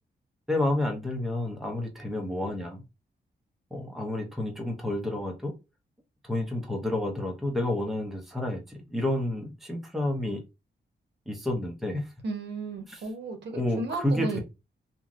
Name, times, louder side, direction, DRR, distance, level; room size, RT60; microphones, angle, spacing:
voice 1, 0.5-2.8 3.7-5.5 6.2-10.4 11.3-12.1 12.9-13.0 13.5-14.4, left 1 dB, ahead, 1 dB, 0.5 m, -30 dB
voice 2, 12.2-14.4, right 3 dB, 75° right, 5 dB, 0.7 m, -34 dB
3.0 x 2.4 x 2.5 m, 0.26 s
wide cardioid pair, 175°, 18 cm